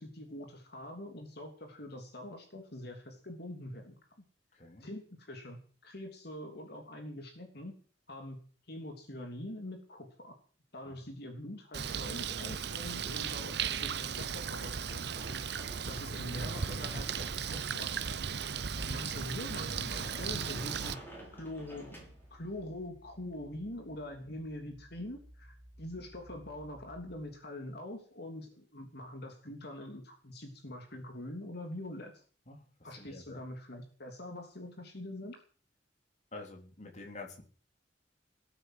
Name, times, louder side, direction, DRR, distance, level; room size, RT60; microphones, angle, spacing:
voice 1, 0.0-4.0 4.8-7.7 8.1-8.4 8.7-10.3 10.7-15.1 15.8-18.2 18.9-21.0 21.3-21.9 22.3-32.2 32.8-35.4, left 1 dB, 60° left, 3 dB, 3.2 m, -44 dB
voice 2, 4.6-4.9 10.8-11.0 18.5-18.9 32.5-32.6 33.0-33.4 36.3-37.4, left 3 dB, 40° left, 1 dB, 4.0 m, -48 dB
Bird, 11.7-20.9, right 6 dB, 65° right, 0.9 m, -36 dB
sound 1, 13.0-27.5, equal, 20° right, 1.6 m, -58 dB
Sliding door, 15.2-22.6, equal, 10° left, 6.5 m, -52 dB
18.5 x 9.1 x 7.9 m, 0.42 s
head